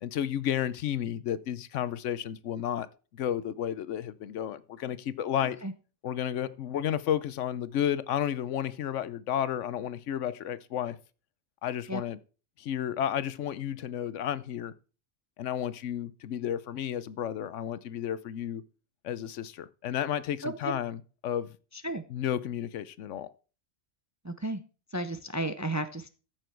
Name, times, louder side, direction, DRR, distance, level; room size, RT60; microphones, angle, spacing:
voice 1, 0.0-2.9 3.1-5.6 6.0-11.0 11.6-12.2 12.6-14.7 15.4-18.6 19.0-21.5 22.1-23.3, left 10 dB, 85° left, 1.0 m, -32 dB
voice 2, 20.4-20.7 21.8-22.0 24.2-24.6 24.9-26.1, right 1 dB, 20° right, 0.4 m, -33 dB
14.0 x 6.2 x 4.5 m
omnidirectional pair, 1.2 m